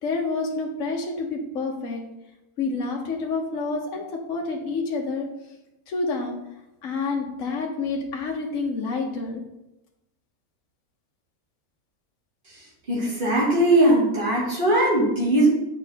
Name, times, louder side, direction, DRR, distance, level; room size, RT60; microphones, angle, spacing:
voice 1, 0.0-2.0 2.6-4.0 4.3-5.3 5.9-6.3 6.8-9.4, left 3 dB, 60° left, 0 dB, 1.3 m, -28 dB
voice 2, 12.9-15.5, right 1 dB, 35° right, -6 dB, 2.4 m, -20 dB
8.5 x 5.3 x 2.9 m, 0.91 s
omnidirectional pair, 1.5 m